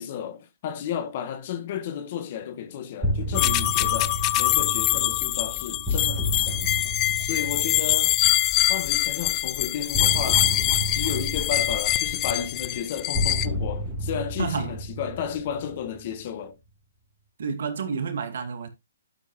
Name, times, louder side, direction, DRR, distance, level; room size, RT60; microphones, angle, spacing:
voice 1, 0.0-6.6 7.2-8.2 8.7-10.5 10.9-16.5, left 8 dB, 45° left, 1.6 m, -33 dB
sound 1, 3.0-8.8 9.9-16.2, equal, 10° right, 3.5 m, -31 dB
sound 2, 3.3-13.5, left 17 dB, 25° left, 0.6 m, -24 dB
voice 2, 14.4-14.8 17.4-18.7, right 6 dB, 65° right, 2.3 m, -30 dB
11.5 x 6.9 x 3.1 m
hypercardioid pair, 140°, 0 cm